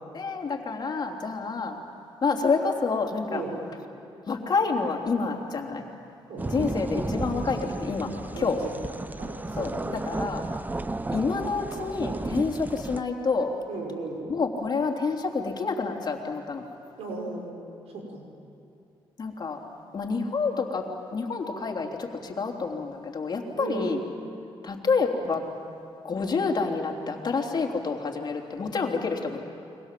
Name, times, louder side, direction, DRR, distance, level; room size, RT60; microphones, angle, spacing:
voice 1, 0.1-1.8 2.2-3.4 4.3-5.8 6.5-8.6 9.6-10.4 11.1-13.5 14.3-16.7 19.2-19.6 19.9-24.0 24.6-25.4 26.0-29.4, left 4 dB, 45° left, 2 dB, 3.5 m, -28 dB
sound 1, 6.4-13.0, right 2 dB, 15° right, 0.8 m, -33 dB
voice 2, 8.3-8.8 9.2-10.0 13.7-14.4 17.0-18.2 23.5-23.9, right 3 dB, 85° right, 0 dB, 5.7 m, -36 dB
30.0 x 23.5 x 7.7 m, 2.6 s
cardioid pair, 85°, 10 cm